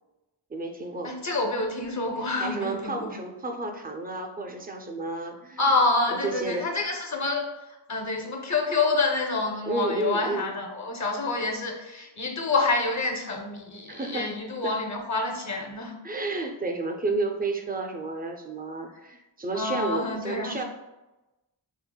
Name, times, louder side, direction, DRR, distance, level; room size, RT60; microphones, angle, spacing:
voice 1, 0.5-1.1 2.4-5.6 6.1-6.7 9.7-10.5 13.9-14.3 14.6-14.8 16.0-20.6, right 2 dB, 20° right, 4 dB, 0.3 m, -31 dB
voice 2, 1.0-3.1 5.6-7.5 7.9-16.0 19.5-20.6, left 3 dB, 40° left, 2 dB, 0.6 m, -27 dB
4.5 x 2.0 x 2.2 m, 1.0 s
wide cardioid pair, 55°, 45 cm